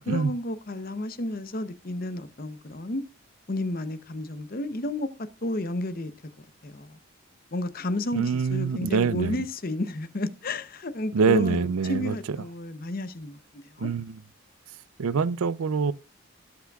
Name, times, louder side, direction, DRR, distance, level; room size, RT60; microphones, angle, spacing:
voice 1, 0.1-3.0 3.5-5.1 5.4-6.1 6.6-7.0 7.5-13.9, left 2 dB, 45° left, 0.7 m, -32 dB
voice 2, 8.1-9.5 11.1-12.4 13.8-14.2 15.0-15.9, right 5 dB, 85° right, 0.5 m, -25 dB
17.5 x 5.9 x 2.3 m
head